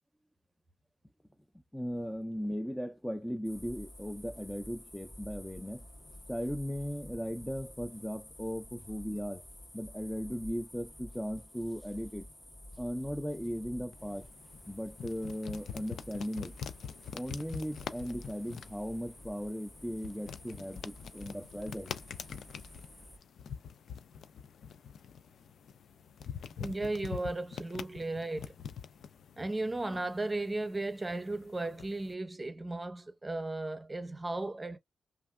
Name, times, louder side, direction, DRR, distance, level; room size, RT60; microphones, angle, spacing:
voice 1, 1.7-5.9 6.3-9.4 9.7-12.3 12.8-14.3 14.7-16.5 17.1-21.9, equal, 5° left, 0.4 m, -37 dB
sound 1, 3.4-23.2, left 1 dB, 30° left, 1.6 m, -51 dB
sound 2, 13.9-32.1, left 7 dB, 85° left, 0.4 m, -46 dB
voice 2, 26.6-28.6 29.4-34.8, right 2 dB, 20° right, 0.8 m, -35 dB
3.2 x 2.2 x 2.2 m
cardioid pair, 75°, 0 cm